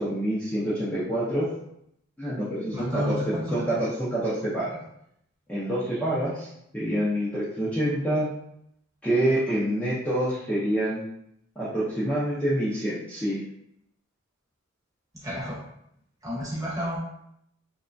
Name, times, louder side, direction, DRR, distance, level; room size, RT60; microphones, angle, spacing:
voice 1, 0.0-1.5 2.2-4.8 5.5-6.5 6.7-8.3 9.0-11.0 11.6-13.4, right 1 dB, 5° left, -11 dB, 0.5 m, -27 dB
voice 2, 2.7-3.6 15.2-15.6 16.2-17.0, equal, 15° right, -7 dB, 0.9 m, -30 dB
2.9 x 2.2 x 2.5 m, 0.75 s
head